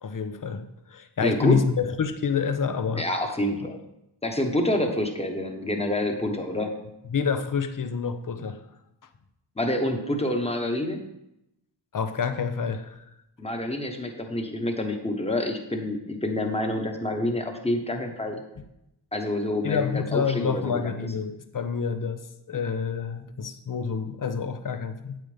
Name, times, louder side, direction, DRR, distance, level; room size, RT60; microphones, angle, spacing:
voice 1, 0.0-3.1 7.1-8.6 11.9-13.0 19.6-25.2, left 6 dB, 45° left, 9 dB, 0.8 m, -28 dB
voice 2, 1.2-1.6 2.9-3.8 4.2-6.7 9.6-11.0 13.4-18.4 19.1-20.8, left 1 dB, 15° left, 4 dB, 1.3 m, -27 dB
9.2 x 8.2 x 3.4 m, 0.85 s
wide cardioid pair, 75°, 46 cm